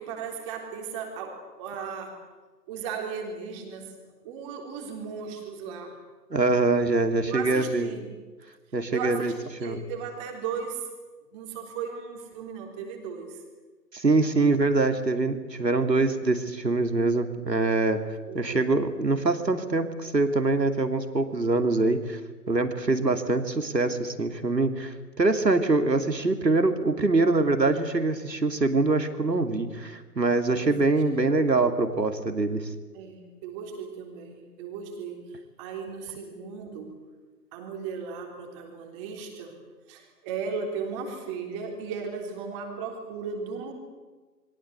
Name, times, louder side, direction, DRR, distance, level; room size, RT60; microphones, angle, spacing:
voice 1, 0.0-2.2 2.7-4.0 4.2-6.0 7.3-8.1 8.9-10.9 11.3-13.4 18.3-18.6 30.5-31.0 31.2-31.3 32.9-36.9 37.5-39.5 39.9-43.7, right 6 dB, 20° right, 3 dB, 3.7 m, -36 dB
voice 2, 6.3-7.9 8.7-9.3 9.6-9.8 13.9-18.0 18.3-22.2 22.5-32.6, right 3 dB, 80° right, 7 dB, 2.9 m, -24 dB
29.0 x 23.0 x 8.2 m, 1.3 s
figure-of-eight pair, 145°, 50 cm